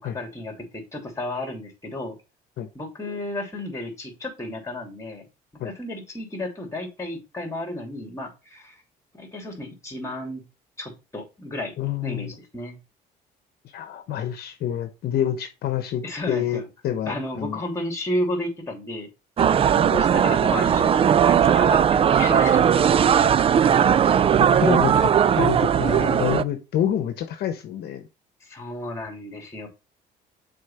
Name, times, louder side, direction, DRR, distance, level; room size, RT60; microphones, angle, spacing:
voice 1, 0.0-2.2 2.7-5.3 5.6-8.8 9.1-10.4 10.8-11.7 12.0-12.8 16.0-16.7 17.0-19.1 19.4-22.9 23.1-23.3 28.4-29.7, left 1 dB, 15° left, 3 dB, 2.9 m, -32 dB
voice 2, 11.8-12.3 13.7-17.6 24.5-28.0, left 10 dB, 70° left, 7 dB, 1.0 m, -27 dB
sound 1, 19.4-26.4, right 8 dB, 35° right, 0.4 m, -18 dB
6.6 x 4.3 x 4.2 m, 0.29 s
cardioid pair, 110°, 17 cm